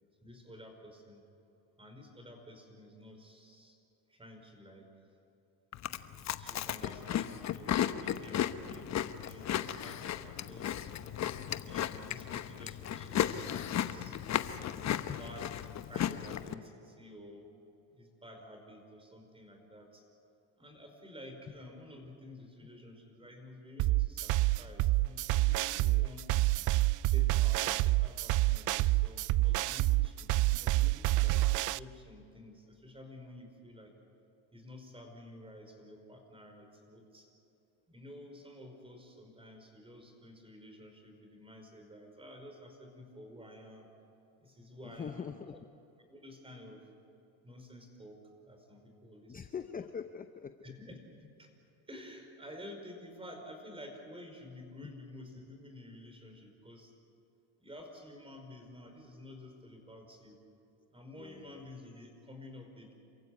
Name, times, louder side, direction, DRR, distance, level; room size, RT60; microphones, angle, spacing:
voice 1, 0.2-1.2 1.8-3.8 4.1-4.9 6.4-10.9 11.6-14.2 15.0-15.5 15.9-17.6 17.9-20.0 20.6-25.8 26.0-26.3 27.0-33.9 34.5-37.3 37.9-43.9 44.4-45.3 46.1-46.9 47.4-49.4 49.8-49.9 50.6-51.5 51.9-56.9 57.6-60.4 60.9-62.9, left 1 dB, 10° right, 5 dB, 5.2 m, -51 dB
Chewing mastication, 5.7-16.5, left 10 dB, 40° left, 1.0 m, -35 dB
voice 2, 10.3-10.7 14.8-15.2 25.7-26.2 44.8-45.6 49.3-50.8 54.8-54.9 61.2-61.6, left 7 dB, 20° left, 10 dB, 0.7 m, -44 dB
sound 1, 23.8-31.8, right 18 dB, 45° right, 0.5 m, -28 dB
28.0 x 15.5 x 9.6 m, 2.8 s
supercardioid pair, 105°, 44 cm